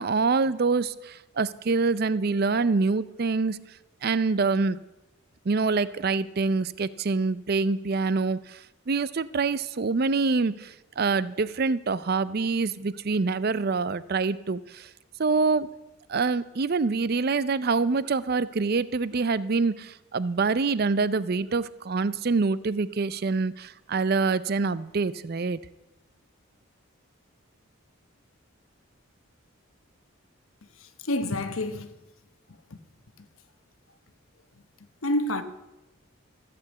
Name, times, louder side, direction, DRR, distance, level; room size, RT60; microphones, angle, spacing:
voice 1, 0.0-3.6 4.0-4.8 5.5-14.9 15.2-15.7 16.1-25.6, right 4 dB, 45° right, 0.5 m, -26 dB
voice 2, 30.6-32.0 32.5-32.8 33.2-33.3 35.0-35.4, left 1 dB, 75° left, 1.0 m, -29 dB
14.5 x 6.9 x 8.4 m
head